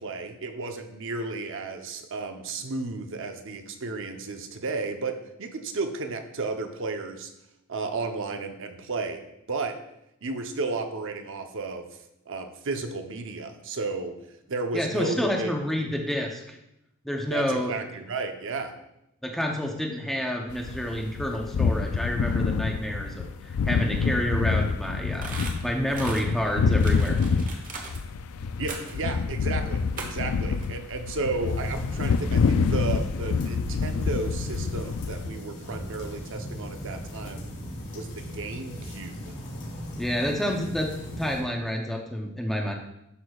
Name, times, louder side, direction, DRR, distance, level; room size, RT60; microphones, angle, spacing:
voice 1, 0.0-7.3 7.7-9.2 9.5-9.7 10.2-11.9 12.3-14.1 14.5-16.0 17.3-18.7 28.6-37.5 37.9-39.2, right 3 dB, 60° right, 6 dB, 0.8 m, -33 dB
voice 2, 14.7-16.6 17.0-17.7 19.2-25.4 25.6-27.4 40.0-42.7, equal, ahead, 0 dB, 0.7 m, -29 dB
sound 1, 20.5-35.3, left 5 dB, 70° left, 0.4 m, -27 dB
sound 2, 25.1-26.2 26.8-28.0 28.7-29.0 30.0-30.3 30.6-30.7, right 3 dB, 40° right, 1.1 m, -38 dB
sound 3, 31.4-41.4, equal, 90° left, 2.5 m, -37 dB
11.0 x 6.1 x 2.4 m, 0.84 s
head